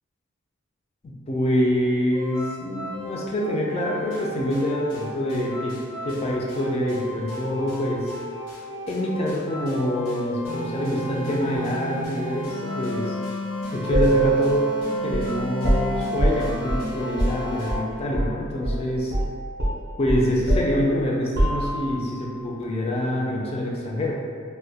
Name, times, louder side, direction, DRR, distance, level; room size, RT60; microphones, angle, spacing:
voice 1, 1.0-5.7 6.0-8.0 8.9-13.2 13.7-14.7 15.0-19.1 20.0-24.1, left 1 dB, 30° left, -3 dB, 0.3 m, -26 dB
sound 1, 2.1-17.7, left 1 dB, 85° left, 0.8 m, -33 dB
sound 2, 13.9-18.4 18.6-18.8 19.1-22.1, right 1 dB, 55° right, 0.5 m, -24 dB
2.2 x 2.1 x 2.7 m, 2.1 s
head